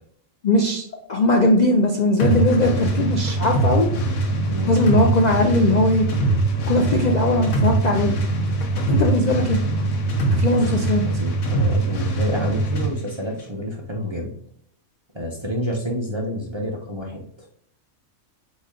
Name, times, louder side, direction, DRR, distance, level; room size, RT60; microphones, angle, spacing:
voice 1, 0.4-0.8 1.1-3.9 4.7-6.1 6.7-8.1 8.9-9.6 10.3-11.0, left 1 dB, 60° left, 1 dB, 0.4 m, -19 dB
sound 1, 2.2-12.9, right 2 dB, 80° left, 1.2 m, -22 dB
voice 2, 4.5-4.8 10.5-10.6 11.1-14.3 15.1-17.2, equal, 30° right, -2 dB, 0.5 m, -28 dB
4.1 x 3.1 x 3.7 m, 0.67 s
omnidirectional pair, 1.4 m